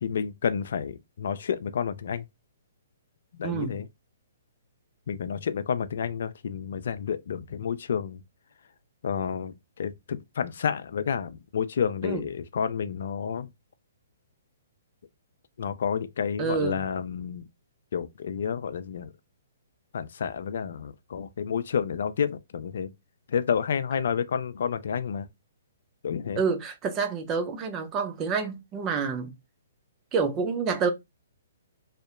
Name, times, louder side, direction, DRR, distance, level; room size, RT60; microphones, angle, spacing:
voice 1, 0.0-2.3 3.4-3.9 5.1-8.2 9.0-13.5 15.6-17.4 17.9-19.1 19.9-22.9 23.3-25.3 26.0-26.4, left 7 dB, 65° left, 0.3 m, -30 dB
voice 2, 3.4-3.7 12.0-12.2 16.4-16.8 26.4-29.3 30.1-30.9, right 5 dB, 25° right, 0.5 m, -28 dB
2.6 x 2.1 x 2.4 m
hypercardioid pair, 135°, 0 cm